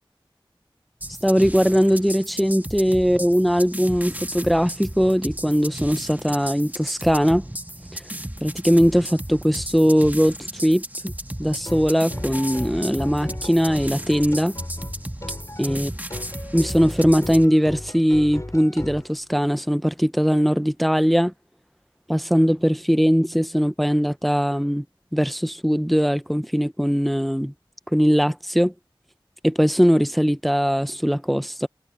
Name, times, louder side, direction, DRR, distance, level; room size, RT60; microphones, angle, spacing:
sound 1, 1.0-17.5, right 1 dB, 20° right, 1.5 m, -34 dB
voice 1, 1.2-7.4 7.9-8.0 8.4-11.1 11.4-14.5 15.6-15.9 16.5-21.3 22.1-24.8 25.1-27.5 27.9-28.7 29.4-31.7, equal, ahead, 0.8 m, -20 dB
sound 2, 11.6-19.1, left 1 dB, 35° left, 3.8 m, -36 dB
wide cardioid pair, 45°, 9 cm